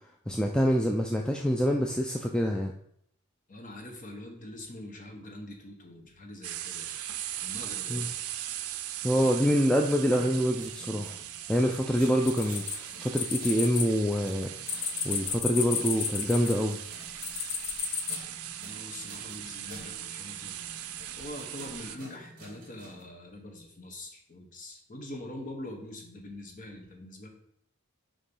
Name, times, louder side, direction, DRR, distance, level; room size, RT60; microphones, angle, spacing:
voice 1, 0.3-2.7 7.9-8.0 9.0-11.1 11.5-14.5 15.0-16.8, equal, 5° left, 1 dB, 0.3 m, -26 dB
voice 2, 3.5-7.0 7.4-8.1 18.6-20.7 21.1-27.3, left 1 dB, 35° left, 2 dB, 1.1 m, -44 dB
sound 1, 6.4-22.0, right 12 dB, 80° right, 0.5 m, -39 dB
sound 2, 8.9-23.0, right 1 dB, 40° right, 2.3 m, -52 dB
sound 3, 12.3-13.8 14.1-16.7 17.2-18.2, left 6 dB, 65° left, 0.9 m, -32 dB
6.9 x 3.0 x 5.3 m, 0.69 s
head